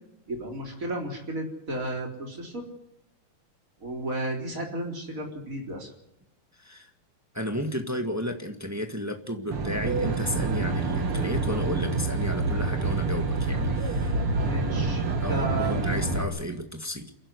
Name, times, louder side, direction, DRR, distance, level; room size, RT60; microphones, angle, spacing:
voice 1, 0.3-2.6 3.8-5.9 14.4-15.7, right 1 dB, 25° right, 2 dB, 4.1 m, -33 dB
voice 2, 6.6-6.9 7.3-14.2 15.2-17.1, equal, 10° right, 5 dB, 0.8 m, -33 dB
Aircraft, 9.5-16.2, right 3 dB, 50° right, 2.8 m, -27 dB
29.5 x 11.0 x 9.8 m, 0.90 s
omnidirectional pair, 3.4 m